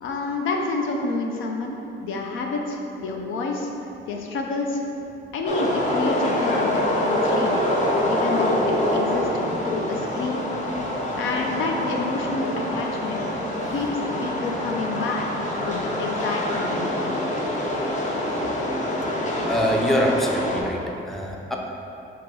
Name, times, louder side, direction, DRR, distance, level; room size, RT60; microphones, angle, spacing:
voice 1, 0.0-3.7 4.1-4.8 5.3-7.6 8.0-9.3 9.6-10.5 11.2-13.2 13.7-15.3 15.6-17.3, left 3 dB, 80° left, 1 dB, 0.5 m, -28 dB
sound 1, 5.5-20.6, left 1 dB, 40° left, 0.7 m, -25 dB
voice 2, 19.4-21.6, equal, ahead, -1 dB, 0.5 m, -24 dB
4.6 x 2.9 x 3.7 m, 2.8 s
cardioid pair, 90°, 20 cm